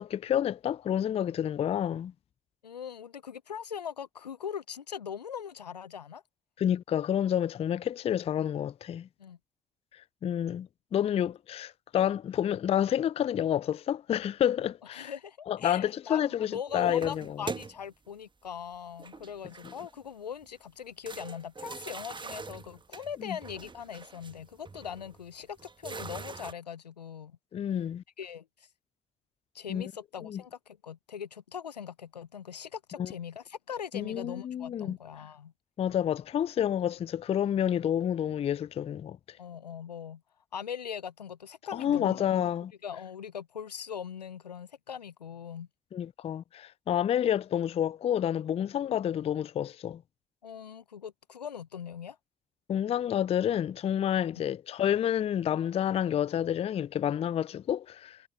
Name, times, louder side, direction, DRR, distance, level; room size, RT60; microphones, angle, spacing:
voice 1, 0.0-2.1 6.6-9.1 10.2-15.1 15.5-17.4 19.6-19.7 23.3-23.4 27.5-28.0 29.7-29.8 30.2-30.4 33.0-33.1 33.9-35.0 35.8-39.4 41.7-42.7 45.9-50.0 52.7-58.2, left 10 dB, 30° left, 0.3 m, -29 dB
voice 2, 2.6-6.2 9.2-9.4 14.9-27.4 28.2-28.7 29.5-35.5 39.4-40.2 40.5-42.5 42.8-45.7 50.4-52.2, left 8 dB, 90° left, 0.7 m, -41 dB
sound 1, 16.7-18.1 19.0-20.0 20.4-20.5 21.0-26.5, right 4 dB, 25° right, 1.3 m, -43 dB
figure-of-eight pair, 45°, 20 cm